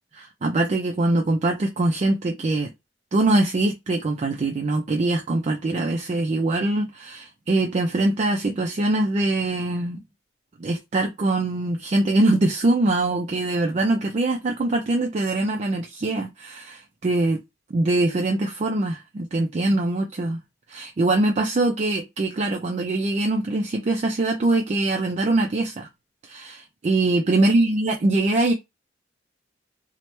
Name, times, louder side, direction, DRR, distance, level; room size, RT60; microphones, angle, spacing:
voice 1, 0.1-2.7 3.1-10.0 10.6-17.4 17.7-20.4 20.7-25.9 26.2-28.5, right 2 dB, 35° right, 0.3 m, -23 dB
3.1 x 2.1 x 2.9 m
head